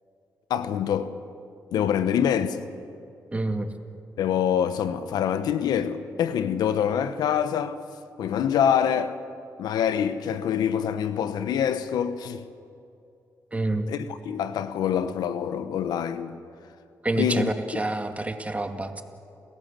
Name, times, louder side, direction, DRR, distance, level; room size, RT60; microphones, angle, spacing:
voice 1, 0.5-1.2 1.7-2.7 4.2-7.8 8.2-9.2 9.6-12.5 13.9-16.4 17.2-17.5, left 8 dB, 85° left, 1.0 m, -25 dB
voice 2, 3.3-3.7 13.5-13.9 17.0-19.0, right 2 dB, 20° right, 2.4 m, -27 dB
29.0 x 16.0 x 7.6 m
cardioid pair, 60°, 7 cm